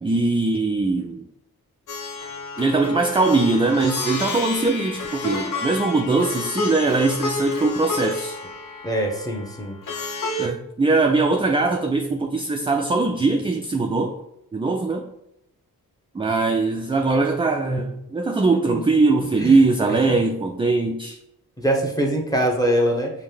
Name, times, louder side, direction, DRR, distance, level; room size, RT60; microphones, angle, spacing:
voice 1, 0.0-1.2 2.6-8.4 10.4-14.2 14.5-15.1 16.1-21.2, right 3 dB, 15° right, 3 dB, 0.4 m, -21 dB
Plucked string instrument, 1.9-10.5, left 3 dB, 60° left, 0.7 m, -30 dB
voice 2, 8.8-9.8 18.7-18.8 19.4-20.2 21.6-23.1, right 1 dB, 10° left, 0 dB, 1.0 m, -23 dB
5.3 x 2.2 x 3.4 m, 0.83 s
cardioid pair, 45°, 37 cm